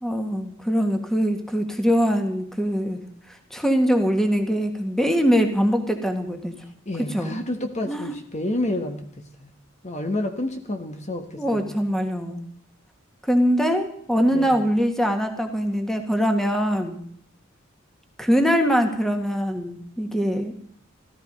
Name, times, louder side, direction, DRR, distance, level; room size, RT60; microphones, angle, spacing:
voice 1, 0.0-3.0 3.3-6.5 7.1-7.4 7.8-8.1 11.4-12.4 13.2-17.0 18.2-20.5, equal, ahead, 5 dB, 1.7 m, -22 dB
voice 2, 6.8-9.1 9.4-9.5 9.8-11.8 14.3-14.6, left 1 dB, 35° left, 5 dB, 1.4 m, -29 dB
15.0 x 14.5 x 5.3 m, 0.64 s
head